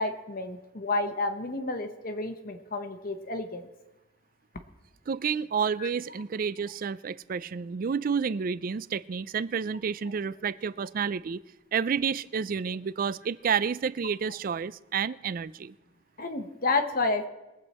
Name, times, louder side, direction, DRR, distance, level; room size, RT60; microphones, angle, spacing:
voice 1, 0.0-3.6 5.8-5.9 16.2-17.3, left 3 dB, 50° left, 6 dB, 1.0 m, -30 dB
voice 2, 5.1-11.4 11.7-15.7, right 6 dB, 45° right, 18 dB, 0.4 m, -30 dB
22.0 x 8.0 x 4.3 m, 1.0 s
head